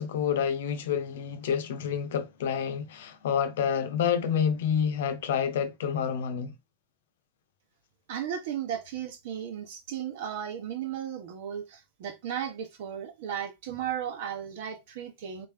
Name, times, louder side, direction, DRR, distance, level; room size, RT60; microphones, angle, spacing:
voice 1, 0.0-6.5, left 7 dB, 75° left, 0.8 m, -28 dB
voice 2, 8.1-15.5, right 9 dB, 70° right, 1.2 m, -35 dB
4.0 x 3.6 x 3.4 m
hypercardioid pair, 110°, 0 cm